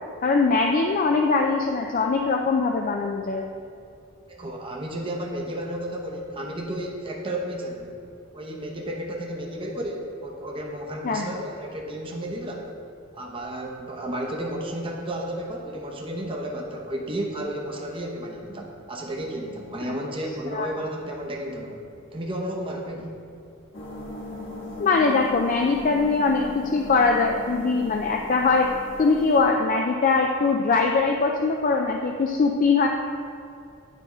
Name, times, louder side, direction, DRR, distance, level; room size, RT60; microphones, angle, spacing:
voice 1, 0.2-3.4 11.0-11.3 19.9-20.0 20.5-20.7 24.8-28.7 29.0-32.9, left 4 dB, 40° left, 2 dB, 0.4 m, -22 dB
voice 2, 4.3-7.9 8.3-12.7 13.1-21.8 22.1-23.2, right 1 dB, 25° right, -1 dB, 0.7 m, -32 dB
sound 1, 23.7-29.4, left 1 dB, 60° left, 1.4 m, -38 dB
9.1 x 3.5 x 5.1 m, 2.5 s
head